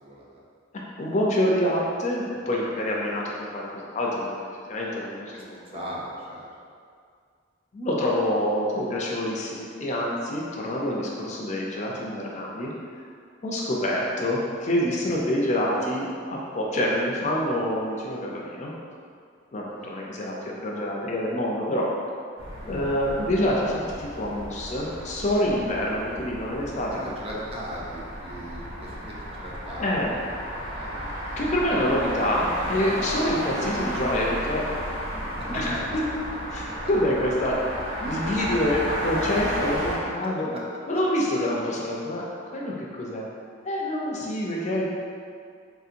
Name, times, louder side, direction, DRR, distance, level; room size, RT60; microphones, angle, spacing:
voice 1, 1.0-4.3 4.7-5.9 7.7-12.7 13.4-18.7 19.5-21.9 22.7-27.4 29.8-30.2 31.4-34.7 35.5-36.0 36.5-37.5 38.0-40.5 40.9-42.3 42.5-43.3 43.6-44.9, left 1 dB, 35° left, -3 dB, 0.4 m, -26 dB
voice 2, 5.7-6.5 13.6-13.7 19.7-19.9 26.9-29.9 30.1-30.4 30.7-30.9 35.5-35.8 40.5-40.6, equal, 30° right, -4 dB, 0.4 m, -39 dB
sound 1, 22.4-40.0, equal, 75° right, 0.9 m, -33 dB
4.0 x 2.8 x 2.5 m, 2.2 s
head